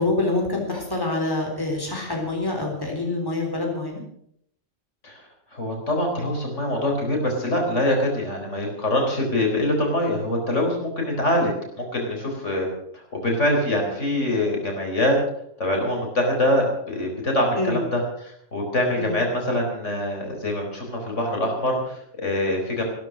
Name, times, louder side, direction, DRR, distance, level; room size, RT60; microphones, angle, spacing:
voice 1, 0.0-4.0 17.6-17.8 18.9-19.2, left 2 dB, 15° left, 0 dB, 3.8 m, -26 dB
voice 2, 5.5-11.5 11.8-15.2 15.6-22.8, left 1 dB, 70° left, 1 dB, 4.6 m, -24 dB
15.5 x 13.0 x 6.4 m, 0.69 s
omnidirectional pair, 1.3 m